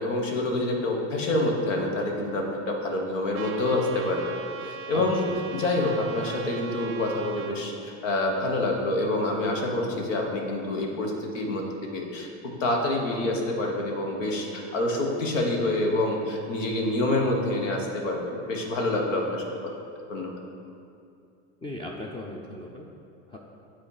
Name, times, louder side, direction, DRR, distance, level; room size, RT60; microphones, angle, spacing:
voice 1, 0.0-4.3 4.6-5.2 5.5-11.6 11.9-12.3 12.6-19.4 20.1-20.3, left 2 dB, 90° left, 1 dB, 1.3 m, -27 dB
Trumpet, 3.3-7.6, right 7 dB, 35° right, 0.5 m, -39 dB
voice 2, 4.9-5.4 21.6-22.9 23.3-23.4, left 1 dB, 15° left, -1 dB, 0.5 m, -37 dB
8.4 x 4.2 x 4.9 m, 2.5 s
supercardioid pair, 110°, 37 cm